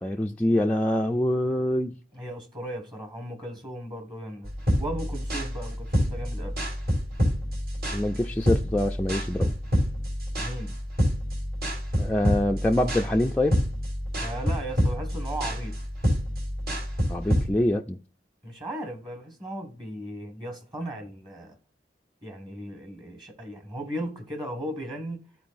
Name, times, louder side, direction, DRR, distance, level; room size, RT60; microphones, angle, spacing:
voice 1, 0.0-2.0 7.9-9.5 12.0-13.6 17.1-18.0, left 1 dB, 5° left, 0.3 m, -25 dB
voice 2, 2.1-4.5 4.8-6.6 10.4-10.8 14.2-15.8 18.4-21.6 22.2-25.2, right 1 dB, 25° right, 1.6 m, -36 dB
sound 1, 4.4-17.5, equal, 55° right, 3.3 m, -28 dB
13.5 x 4.6 x 2.5 m
head